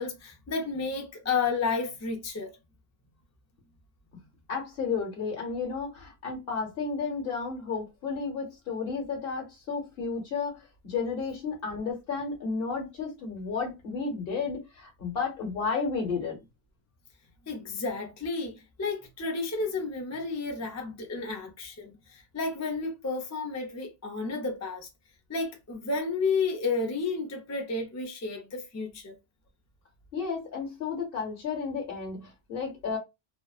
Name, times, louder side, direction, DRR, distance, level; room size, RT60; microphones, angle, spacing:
voice 1, 0.0-2.5 17.5-24.9 25.3-29.2, left 4 dB, 25° left, 0.3 m, -32 dB
voice 2, 4.5-16.4 30.1-33.0, left 5 dB, 60° left, 1.1 m, -32 dB
2.6 x 2.0 x 2.3 m
omnidirectional pair, 1.1 m